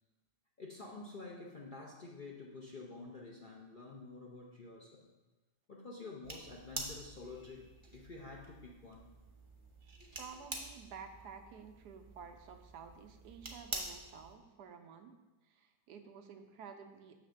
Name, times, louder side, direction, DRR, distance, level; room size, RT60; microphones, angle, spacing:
voice 1, 0.6-5.1 5.7-9.1 10.0-10.4, left 3 dB, 45° left, -3 dB, 0.7 m, -49 dB
sound 1, 6.2-14.4, right 2 dB, 25° right, 0.6 m, -47 dB
voice 2, 10.2-15.1 15.4-17.2, right 6 dB, 80° right, 6 dB, 1.2 m, -52 dB
7.3 x 3.4 x 6.3 m, 1.1 s
omnidirectional pair, 1.7 m